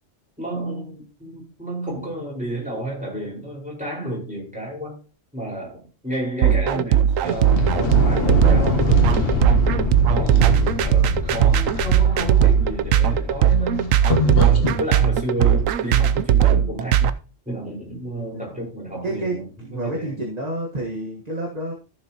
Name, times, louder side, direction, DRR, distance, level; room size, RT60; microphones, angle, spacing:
voice 1, 0.4-4.9 5.3-9.5 10.1-13.9 14.2-17.2 17.4-20.1, right 1 dB, 5° right, -3 dB, 4.9 m, -31 dB
sound 1, 6.4-17.1, right 10 dB, 85° right, 1.0 m, -18 dB
sound 2, 7.3-14.8, left 3 dB, 50° left, 1.6 m, -24 dB
voice 2, 19.0-21.7, right 1 dB, 30° right, -1 dB, 1.6 m, -29 dB
14.0 x 6.8 x 3.0 m, 0.36 s
omnidirectional pair, 1.3 m